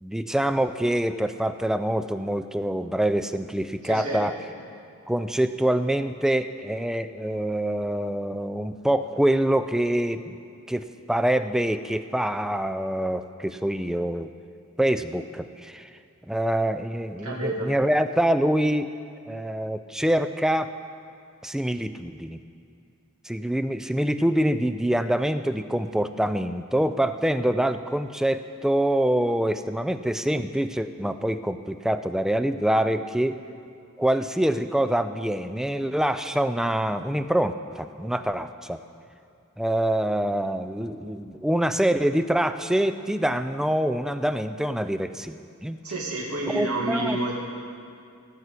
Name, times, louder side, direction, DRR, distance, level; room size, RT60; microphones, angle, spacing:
voice 1, 0.0-4.4 5.1-10.4 10.7-14.3 14.8-15.9 16.3-18.9 19.3-20.7 21.4-22.4 23.2-33.4 34.0-38.8 39.6-45.8 46.5-47.2, right 1 dB, ahead, 10 dB, 0.3 m, -25 dB
voice 2, 3.8-4.2 17.2-17.7 45.8-47.4, right 2 dB, 80° right, -4 dB, 2.2 m, -29 dB
17.0 x 5.9 x 8.1 m, 2.4 s
head